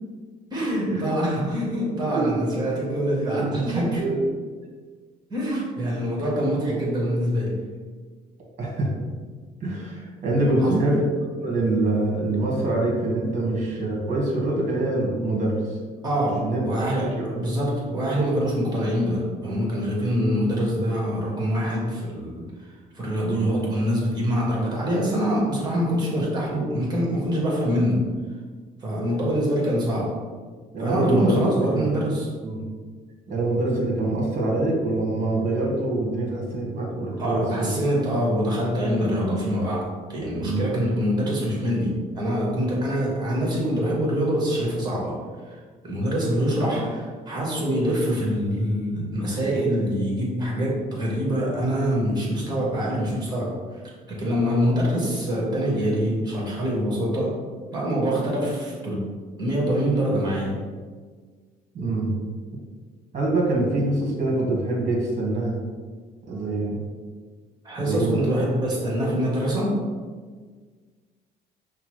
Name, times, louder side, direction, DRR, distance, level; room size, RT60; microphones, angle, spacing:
voice 1, 0.5-4.0 5.3-7.6 10.6-10.9 16.0-22.4 22.9-28.0 28.8-30.1 30.8-32.3 37.2-45.2 45.4-45.6 45.8-53.6 54.1-57.3 57.7-59.0 59.4-60.6 67.6-69.8, equal, 25° right, -4 dB, 1.5 m, -25 dB
voice 2, 3.4-4.2 8.6-8.9 9.6-15.8 16.4-16.6 17.0-17.3 23.2-23.6 30.7-32.0 32.4-32.6 33.3-37.8 40.4-40.7 46.6-46.8 61.7-62.1 63.1-65.6 66.3-66.8 67.8-68.2, right 2 dB, 45° right, -2 dB, 1.3 m, -25 dB
5.7 x 2.1 x 3.1 m, 1.5 s
cardioid pair, 110°, 17 cm